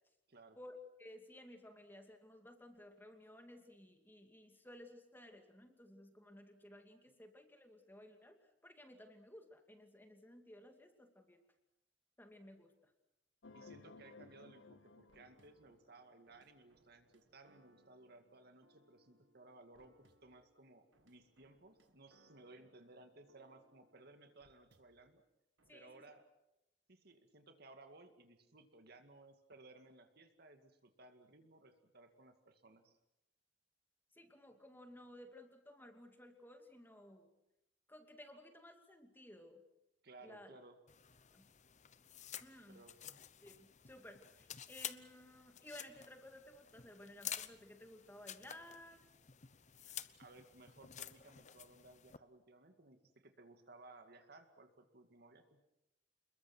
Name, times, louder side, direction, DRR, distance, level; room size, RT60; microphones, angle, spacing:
voice 1, 0.6-11.4 12.2-12.9 25.7-26.0 34.1-37.3 37.9-39.6 40.2-40.6 41.3-41.5 42.4-42.9 43.4-49.0, left 1 dB, 10° left, 5 dB, 2.4 m, -57 dB
sound 1, 13.4-16.2, left 3 dB, 75° left, 0.9 m, -59 dB
voice 2, 13.5-25.2 25.7-26.2 26.9-33.0 40.0-40.8 42.7-43.2 49.8-55.6, right 2 dB, 60° right, 7 dB, 2.2 m, -60 dB
sound 2, 14.0-25.1 25.6-25.7, right 1 dB, 80° right, 1.9 m, -73 dB
sound 3, 40.9-52.2, left 10 dB, 40° left, 0.8 m, -51 dB
28.5 x 21.5 x 6.2 m, 0.89 s
head